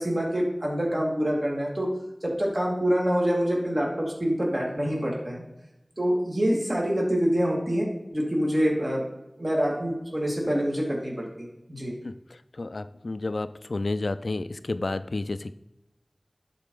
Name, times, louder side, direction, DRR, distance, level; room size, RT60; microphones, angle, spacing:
voice 1, 0.0-1.9 2.2-5.4 6.0-7.9 8.1-9.0 9.4-11.9, equal, 40° right, -2 dB, 2.0 m, -26 dB
voice 2, 12.0-15.5, left 2 dB, 90° left, 13 dB, 0.3 m, -31 dB
11.5 x 4.2 x 3.7 m, 0.92 s
wide cardioid pair, 45°, 0 cm